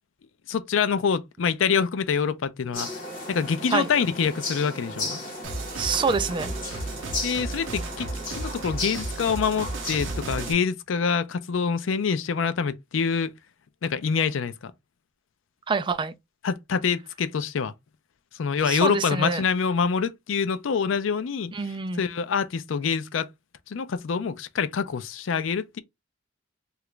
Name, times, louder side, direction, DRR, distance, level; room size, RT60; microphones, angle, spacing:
voice 1, 0.5-2.9 3.3-5.2 7.2-8.1 8.4-13.3 13.8-14.7 16.4-17.7 18.4-21.5 22.0-23.3 23.7-25.8, left 6 dB, 75° left, 0.4 m, -26 dB
sound 1, 2.7-10.5, left 2 dB, 45° left, 1.5 m, -35 dB
sound 2, 5.4-10.5, right 2 dB, 70° right, 0.6 m, -34 dB
voice 2, 5.8-6.5 15.7-16.1 18.7-19.4 21.5-22.1, right 5 dB, 25° right, 0.3 m, -26 dB
2.9 x 2.4 x 3.2 m
head